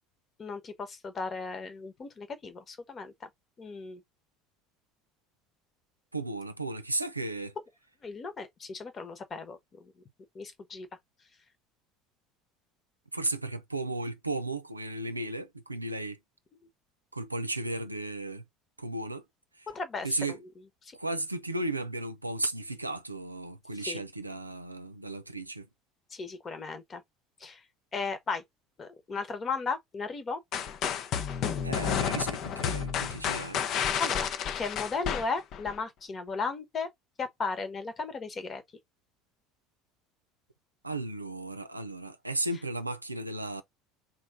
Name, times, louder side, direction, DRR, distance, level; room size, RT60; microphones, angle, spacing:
voice 1, 0.4-3.1 3.6-4.0 8.0-9.9 10.3-10.9 19.7-20.4 20.8-20.9 23.9-24.0 26.1-27.0 27.4-27.6 27.9-28.4 28.8-30.4 34.0-34.3 34.5-36.9 37.2-38.6, left 4 dB, 30° left, 1.2 m, -35 dB
voice 2, 6.1-7.5 13.1-16.2 17.1-18.4 18.8-19.2 19.6-19.7 20.0-20.4 20.9-25.7 31.6-33.6 40.8-43.6, right 2 dB, 90° right, 0.5 m, -35 dB
sound 1, 30.5-35.8, left 8 dB, 50° left, 0.7 m, -31 dB
3.9 x 3.1 x 3.6 m
figure-of-eight pair, 65°, 0 cm